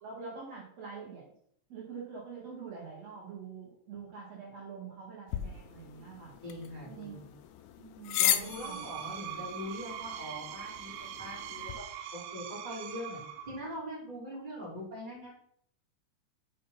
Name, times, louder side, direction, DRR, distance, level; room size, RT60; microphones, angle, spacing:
voice 1, 0.0-1.2 1.7-6.3 6.9-7.3 7.8-8.9, right 5 dB, 60° right, -4 dB, 2.9 m, -45 dB
sound 1, 5.3-11.8, left 12 dB, 90° left, 2.0 m, -36 dB
voice 2, 6.4-7.3 8.2-11.7 12.1-13.2 13.5-15.3, left 1 dB, 15° right, -6 dB, 3.8 m, -42 dB
Screech, 8.3-13.8, right 10 dB, 75° right, 1.8 m, -42 dB
6.6 x 5.8 x 5.7 m, 0.66 s
omnidirectional pair, 3.4 m